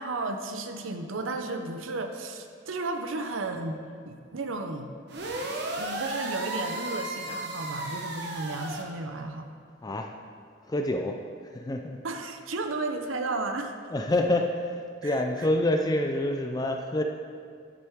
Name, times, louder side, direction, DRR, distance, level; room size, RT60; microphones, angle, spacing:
voice 1, 0.0-3.8 4.1-4.9 5.8-9.5 12.0-13.8 15.0-15.5, right 3 dB, 85° right, 6 dB, 0.7 m, -33 dB
sound 1, 5.1-8.8, right 1 dB, 55° right, 1.0 m, -34 dB
voice 2, 10.7-11.2 11.5-12.0 13.9-14.7 15.0-17.0, left 1 dB, 20° left, 4 dB, 0.4 m, -27 dB
9.7 x 7.6 x 3.6 m, 2.2 s
head